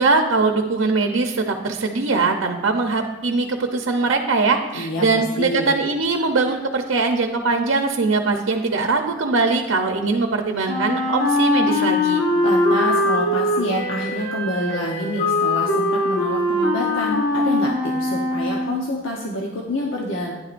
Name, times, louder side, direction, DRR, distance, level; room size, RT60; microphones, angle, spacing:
voice 1, 0.0-12.2, right 3 dB, 85° right, 4 dB, 0.7 m, -21 dB
voice 2, 4.7-5.7 12.4-20.3, left 1 dB, 80° left, -1 dB, 1.0 m, -27 dB
Wind instrument woodwind instrument, 10.6-18.8, left 1 dB, 55° left, 1.8 m, -21 dB
11.0 x 10.0 x 2.6 m, 1.1 s
head